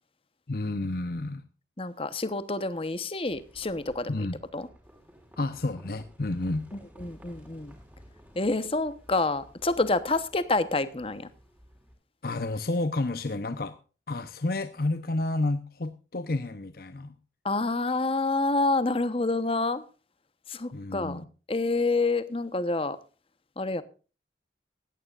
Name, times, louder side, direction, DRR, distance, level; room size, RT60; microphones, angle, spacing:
voice 1, 0.5-1.4 4.1-4.4 5.4-6.6 12.2-13.8 14.1-17.2 20.7-21.3, left 2 dB, 55° left, 0.8 m, -30 dB
voice 2, 1.8-4.2 4.5-4.7 6.7-7.7 8.3-11.3 17.4-19.8 20.5-23.0 23.6-23.8, left 3 dB, 30° left, 1.0 m, -28 dB
Livestock farm animals working animals, 3.3-11.9, equal, 10° right, 5.8 m, -54 dB
17.0 x 14.5 x 2.5 m
head